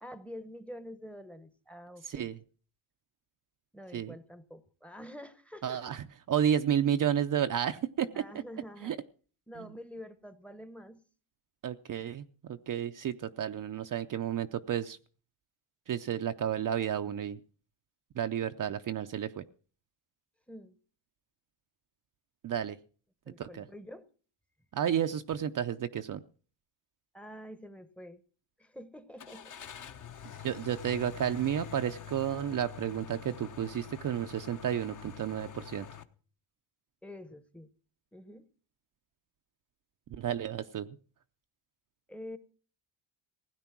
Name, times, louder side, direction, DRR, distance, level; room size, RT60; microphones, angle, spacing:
voice 1, 0.0-2.3 3.7-5.9 8.1-8.9 9.5-11.0 20.5-20.8 23.3-24.0 27.1-28.2 28.6-29.5 37.0-37.7 38.1-38.5 42.1-42.4, equal, 5° left, 0.9 m, -47 dB
voice 2, 2.1-2.4 3.9-4.2 5.6-8.1 8.8-9.0 9.6-9.7 11.6-15.0 15.9-17.4 18.2-19.4 22.4-22.8 23.4-23.7 24.7-26.2 30.4-35.9 40.1-40.9, right 9 dB, 40° right, 0.6 m, -32 dB
Car / Engine starting, 29.2-36.0, left 9 dB, 40° left, 1.0 m, -46 dB
16.5 x 9.6 x 6.0 m
cardioid pair, 110°, 49 cm